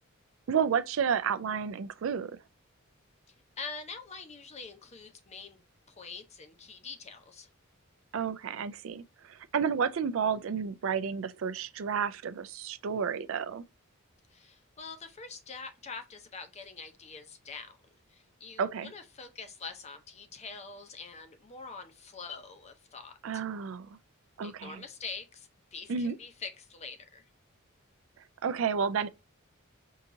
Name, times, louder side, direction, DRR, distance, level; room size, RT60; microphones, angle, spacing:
voice 1, 0.5-2.3 8.1-13.6 18.6-18.9 23.2-23.9 24.4-24.8 25.9-26.2 28.4-29.1, right 6 dB, 65° right, 0.4 m, -31 dB
voice 2, 3.6-5.6 5.9-7.5 14.3-17.8 18.1-23.4 24.4-27.2, left 5 dB, 30° left, 0.6 m, -45 dB
4.7 x 2.8 x 2.6 m
head